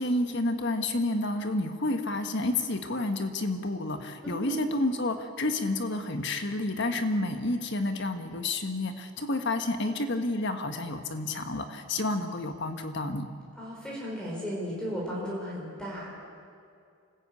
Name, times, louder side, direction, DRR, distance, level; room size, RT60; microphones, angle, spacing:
voice 1, 0.0-13.3, left 2 dB, 50° left, 7 dB, 1.5 m, -30 dB
voice 2, 4.3-4.7 13.6-16.2, equal, 5° left, -4 dB, 4.4 m, -35 dB
27.0 x 15.0 x 8.5 m, 2.4 s
head